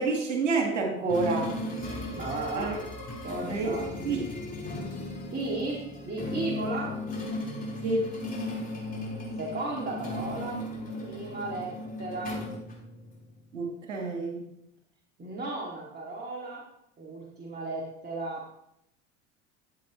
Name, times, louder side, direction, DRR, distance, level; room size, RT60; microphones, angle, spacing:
voice 1, 0.0-1.6 2.6-2.8 3.5-3.8 4.0-4.3 7.8-8.0 13.5-14.4, right 3 dB, 90° right, 2 dB, 1.7 m, -28 dB
sound 1, 1.1-13.4, left 2 dB, 25° left, 4.2 m, -36 dB
voice 2, 2.1-2.7 3.2-3.9 5.3-7.0 9.4-10.6 10.9-11.7 12.0-12.4 15.2-16.6 17.0-18.4, right 2 dB, 25° right, -2 dB, 2.3 m, -35 dB
12.5 x 7.9 x 3.1 m, 0.77 s
hypercardioid pair, 80°, 36 cm